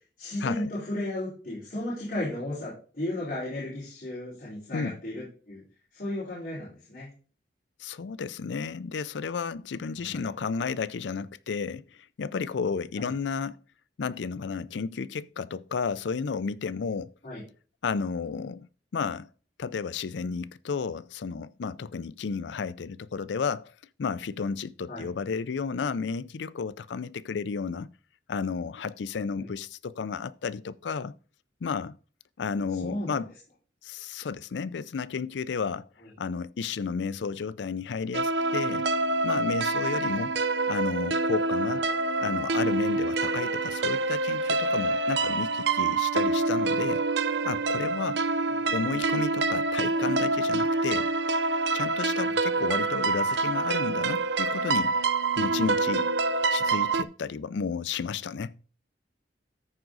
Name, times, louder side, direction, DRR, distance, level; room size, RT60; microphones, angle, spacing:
voice 1, 0.2-5.6 5.9-7.1 10.0-10.2 13.0-13.1 17.2-17.4 24.9-25.1 29.4-29.5 32.8-33.2 48.5-48.8 52.2-52.3, left 1 dB, 50° left, 4.4 m, -34 dB
voice 2, 7.8-11.8 12.2-13.6 14.0-17.1 17.8-18.7 18.9-19.3 19.6-23.7 24.0-27.9 28.3-31.1 31.6-32.0 32.4-33.3 33.8-35.9 36.2-38.9 39.2-40.3 40.7-41.8 42.2-47.0 47.4-48.2 48.7-51.1 51.7-54.9 55.4-56.1 56.5-58.6, left 5 dB, 85° left, 0.4 m, -32 dB
sound 1, 38.1-57.0, right 3 dB, 75° right, 0.5 m, -26 dB
13.5 x 4.8 x 3.9 m
head